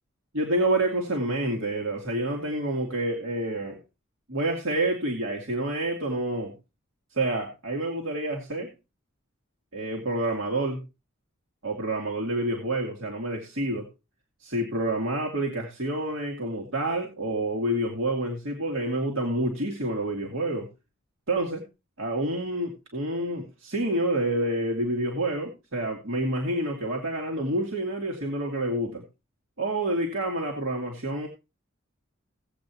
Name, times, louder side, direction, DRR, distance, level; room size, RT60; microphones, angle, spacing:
voice 1, 0.3-3.8 4.3-6.5 7.1-8.7 9.7-10.8 11.6-13.9 14.4-20.7 21.3-21.6 22.0-29.0 29.6-31.3, right 1 dB, 75° right, 0 dB, 2.3 m, -28 dB
17.5 x 8.2 x 3.0 m, 0.27 s
head